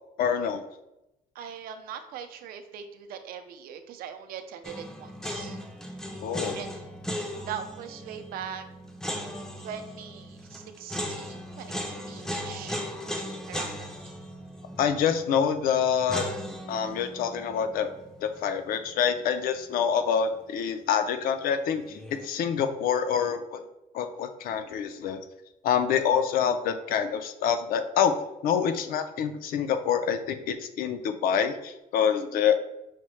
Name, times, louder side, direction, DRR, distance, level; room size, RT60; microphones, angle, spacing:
voice 1, 0.2-0.6 6.2-6.5 14.8-16.3 16.7-17.9 18.2-21.8 22.1-23.6 23.9-25.2 25.6-28.1 28.4-32.6, left 7 dB, 75° left, 9 dB, 0.4 m, -26 dB
voice 2, 1.4-5.6 6.5-6.7 7.1-8.6 9.6-12.8 13.5-13.8 32.2-32.5, right 8 dB, 85° right, 8 dB, 0.4 m, -41 dB
sound 1, 4.6-19.6 19.9-20.0 21.7-22.2, equal, 5° left, 0.3 m, -38 dB
5.7 x 2.1 x 3.1 m, 0.92 s
cardioid pair, 180°, 15 cm